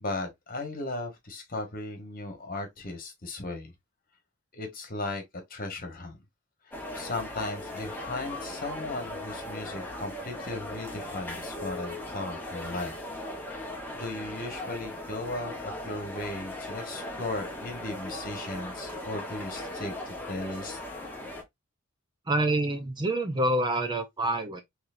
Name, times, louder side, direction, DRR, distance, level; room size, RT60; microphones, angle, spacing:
voice 1, 0.0-3.7 4.5-5.2 5.5-6.2 6.9-12.9 13.5-13.6 13.9-20.8, left 2 dB, 40° left, 1.5 m, -36 dB
sound 1, 6.7-21.4, left 1 dB, 10° left, 1.1 m, -38 dB
voice 2, 22.3-24.6, right 1 dB, 20° right, 0.6 m, -27 dB
4.3 x 3.3 x 2.6 m
head